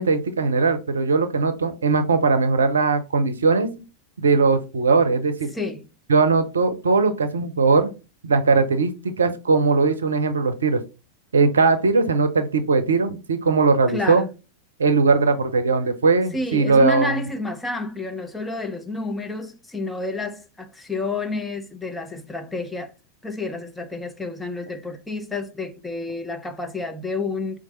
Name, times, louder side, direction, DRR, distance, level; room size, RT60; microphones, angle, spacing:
voice 1, 0.0-3.7 4.2-5.5 6.1-7.9 8.2-8.9 9.2-10.8 11.3-14.2 14.8-17.2, right 4 dB, 70° right, 0.6 m, -19 dB
voice 2, 5.5-5.9 13.9-14.3 16.3-22.9 23.2-27.6, left 2 dB, 5° left, 0.5 m, -30 dB
4.6 x 2.5 x 4.0 m
figure-of-eight pair, 90°, 0 cm